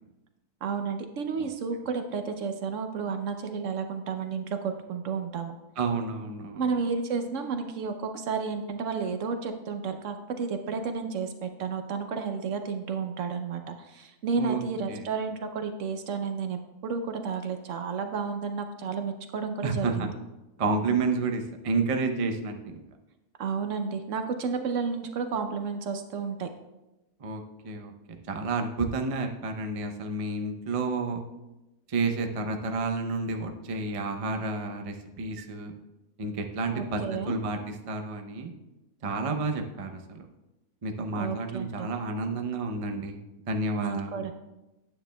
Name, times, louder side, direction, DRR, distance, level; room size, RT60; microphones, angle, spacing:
voice 1, 0.6-5.5 6.6-20.1 23.4-26.5 36.7-37.4 41.1-41.9 43.8-44.3, right 5 dB, 65° right, 6 dB, 0.9 m, -32 dB
voice 2, 5.8-6.6 14.4-14.6 14.9-15.0 19.6-20.1 20.6-22.8 27.2-27.9 28.3-31.2 31.9-35.7 36.2-38.5 39.0-40.2 40.8-43.2 43.5-44.2, right 3 dB, 45° right, 4 dB, 0.4 m, -30 dB
9.5 x 8.9 x 2.2 m, 0.98 s
omnidirectional pair, 1.6 m